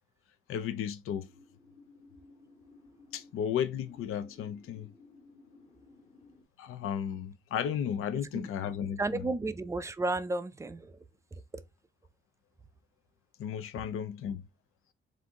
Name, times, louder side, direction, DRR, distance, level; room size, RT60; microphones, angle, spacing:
voice 1, 0.5-1.3 3.1-4.9 6.6-9.2 13.4-14.4, left 8 dB, 85° left, 0.5 m, -34 dB
sound 1, 1.1-6.4, left 3 dB, 30° left, 0.9 m, -57 dB
voice 2, 9.0-11.0, right 2 dB, 15° right, 0.4 m, -32 dB
4.3 x 2.6 x 3.6 m
cardioid pair, 120°, 21 cm